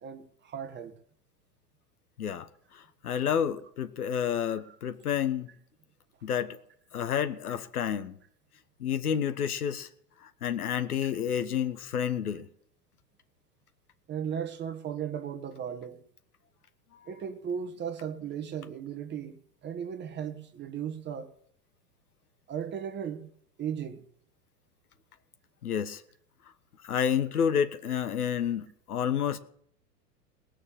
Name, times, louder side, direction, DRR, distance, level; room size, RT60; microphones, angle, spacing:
voice 1, 0.0-0.9 11.0-11.1 14.1-16.0 17.1-19.4 19.6-21.3 22.5-23.2 23.6-24.0, right 8 dB, 20° right, 1.5 m, -36 dB
voice 2, 2.2-5.5 6.2-6.6 6.9-8.2 8.8-9.9 10.2-12.5 16.9-17.1 25.6-26.0 26.8-29.4, left 8 dB, 65° left, 1.3 m, -30 dB
19.5 x 6.6 x 9.8 m
figure-of-eight pair, 95°, 48 cm